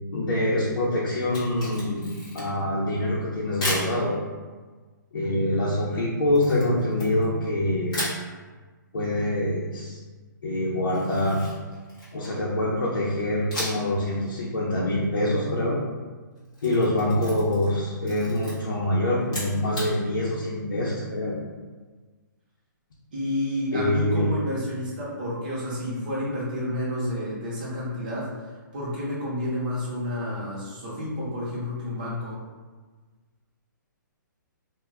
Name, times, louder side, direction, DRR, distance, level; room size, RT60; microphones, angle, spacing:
voice 1, 0.1-2.1 2.3-4.2 5.1-8.0 8.9-10.0 10.4-11.5 12.1-15.8 16.6-21.4 23.7-24.3, left 1 dB, 75° left, -7 dB, 0.6 m, -25 dB
Camera, 1.2-2.7 3.6-3.9 6.3-7.5 7.9-8.2 10.9-12.4 13.5-13.9 14.3-14.4 16.4-17.8 18.0-18.5 19.2-19.9, left 1 dB, 15° left, 0.7 m, -34 dB
voice 2, 23.1-32.4, left 1 dB, 25° right, -7 dB, 0.6 m, -30 dB
2.1 x 2.1 x 3.5 m, 1.4 s
hypercardioid pair, 180°, 11 cm